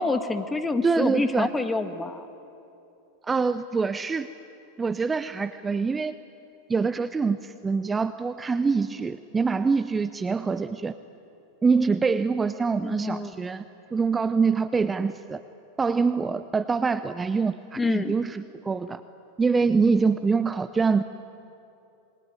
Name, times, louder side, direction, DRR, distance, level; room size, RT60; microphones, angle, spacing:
voice 1, 0.0-2.3 12.8-13.3 17.8-18.1, left 3 dB, 15° left, 10 dB, 1.7 m, -27 dB
voice 2, 0.8-1.5 3.2-4.3 4.8-6.1 6.7-10.9 11.6-13.6 13.9-15.4 15.8-19.0 19.4-21.0, right 4 dB, 15° right, 12 dB, 0.8 m, -25 dB
27.0 x 22.5 x 9.6 m, 2.7 s
hypercardioid pair, 90°, 0 cm